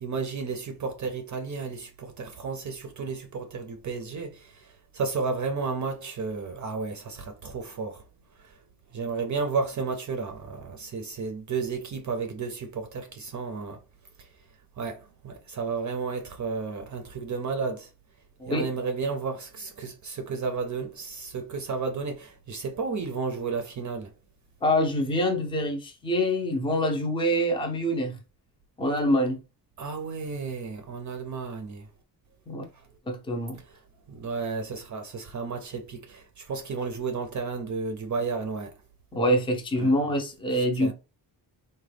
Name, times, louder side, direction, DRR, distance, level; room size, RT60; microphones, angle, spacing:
voice 1, 0.0-8.0 8.4-8.5 8.9-13.8 14.2-14.3 14.8-17.9 18.5-24.1 29.8-31.9 32.7-32.8 33.5-33.8 34.1-38.7 39.8-39.9 40.8-40.9, right 4 dB, 50° right, 0.5 m, -32 dB
voice 2, 24.6-28.2 28.8-29.4 32.5-32.6 33.1-33.6 39.1-40.9, equal, 15° left, 0.5 m, -25 dB
3.7 x 2.2 x 3.3 m
wide cardioid pair, 170°, 39 cm